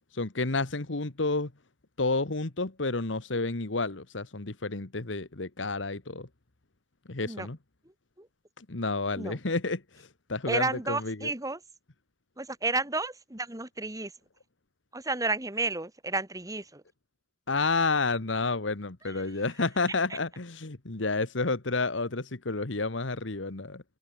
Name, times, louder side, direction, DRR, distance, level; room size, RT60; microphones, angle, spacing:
voice 1, 0.1-1.5 2.0-6.3 7.1-7.6 8.6-11.3 17.5-23.8, left 3 dB, 75° left, 1.5 m, -30 dB
voice 2, 10.5-11.6 12.4-14.1 14.9-16.8 19.1-19.2 20.1-20.2, right 3 dB, 20° right, 2.6 m, -31 dB
open air
head